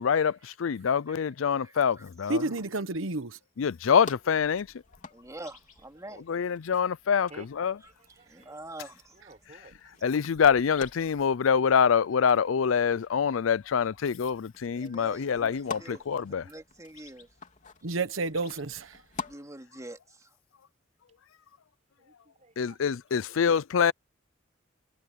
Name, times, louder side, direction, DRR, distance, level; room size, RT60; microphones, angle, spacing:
voice 1, 0.0-2.4 3.6-4.7 6.3-7.8 10.0-16.4 22.6-23.9, left 7 dB, 85° left, 0.5 m, -25 dB
voice 2, 1.6-2.0 5.1-6.2 8.3-9.2 14.7-17.3 19.2-20.3, right 1 dB, 15° right, 2.9 m, -45 dB
voice 3, 2.3-3.4 17.8-19.0, right 2 dB, 85° right, 1.1 m, -30 dB
sound 1, 4.0-19.3, left 4 dB, 40° left, 3.1 m, -47 dB
voice 4, 7.8-8.6 9.1-9.7 22.0-22.8 23.3-23.4, right 2 dB, 35° right, 5.0 m, -53 dB
head